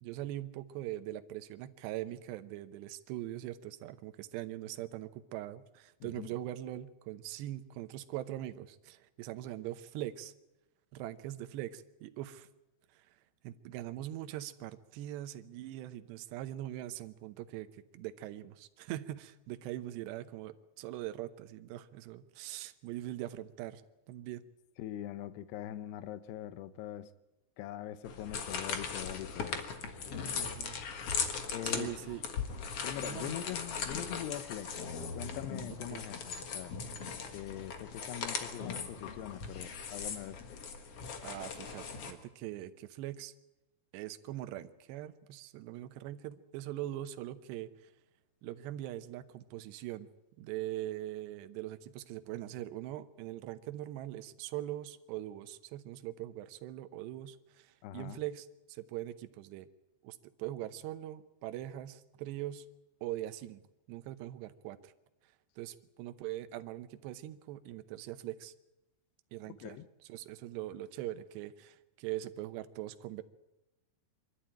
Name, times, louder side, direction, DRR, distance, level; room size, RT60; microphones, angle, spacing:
voice 1, 0.0-10.3 10.9-12.5 12.9-13.2 13.4-23.8 24.1-24.4 30.3-30.8 31.6-32.2 33.0-33.4 35.9-36.1 41.2-43.3 43.9-47.9 48.4-50.1 50.4-59.7 60.0-62.7 63.0-63.6 63.9-64.9 65.6-68.5 69.3-69.8 70.1-73.2, right 14 dB, 80° right, 11 dB, 3.0 m, -42 dB
voice 2, 24.8-27.1 27.6-29.6 31.5-31.9 32.8-34.7 35.1-36.7 37.3-40.4 57.8-58.2 69.6-69.9, left 12 dB, 80° left, 14 dB, 2.8 m, -42 dB
sound 1, 28.0-42.1, left 6 dB, 60° left, 1.6 m, -39 dB
24.0 x 13.0 x 8.9 m, 0.99 s
omnidirectional pair, 5.0 m